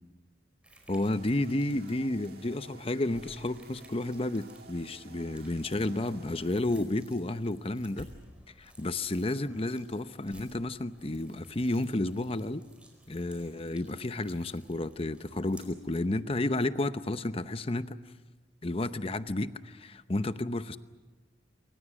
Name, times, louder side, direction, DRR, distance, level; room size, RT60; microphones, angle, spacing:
sound 1, 0.6-16.0, right 1 dB, 5° right, 4.8 m, -56 dB
voice 1, 0.9-8.1 8.6-12.6 13.1-18.0 18.6-20.8, left 2 dB, 30° left, 12 dB, 0.8 m, -31 dB
sound 2, 1.1-6.6, right 3 dB, 60° right, 1.7 m, -54 dB
27.5 x 24.5 x 6.3 m, 1.3 s
head